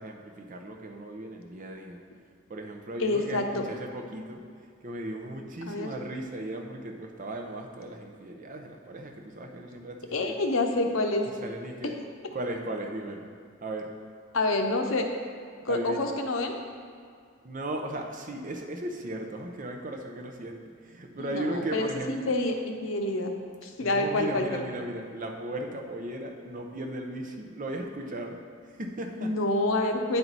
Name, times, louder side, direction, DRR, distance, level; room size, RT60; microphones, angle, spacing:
voice 1, 0.0-2.0 2.5-4.4 4.8-10.4 11.4-12.0 12.3-13.3 13.6-13.9 15.7-16.1 17.4-22.3 23.8-28.4 28.7-29.3, right 1 dB, 40° right, 3 dB, 0.6 m, -36 dB
voice 2, 3.0-3.6 5.7-5.9 10.1-11.2 14.3-15.1 15.6-16.6 21.2-22.5 22.8-23.3 23.6-24.6 29.2-30.2, left 2 dB, 85° left, 4 dB, 0.7 m, -27 dB
9.4 x 4.5 x 4.0 m, 2.2 s
head